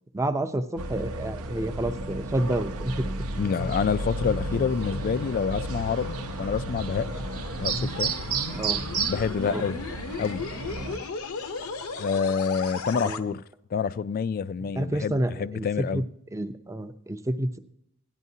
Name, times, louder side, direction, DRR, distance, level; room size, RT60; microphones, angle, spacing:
voice 1, 0.1-3.0 8.5-8.8 9.4-9.6 12.9-13.3 14.8-15.7 15.9-16.0 16.3-17.6, right 1 dB, 15° right, 0.5 m, -29 dB
sound 1, 0.8-11.0, right 3 dB, 70° right, 0.7 m, -33 dB
sound 2, 3.1-13.2, left 3 dB, 70° left, 0.7 m, -36 dB
voice 2, 3.4-7.1 7.6-8.1 9.1-9.8 10.2-10.4 12.0-13.4 13.7-16.0, left 6 dB, 40° left, 0.3 m, -27 dB
17.5 x 10.5 x 2.8 m
head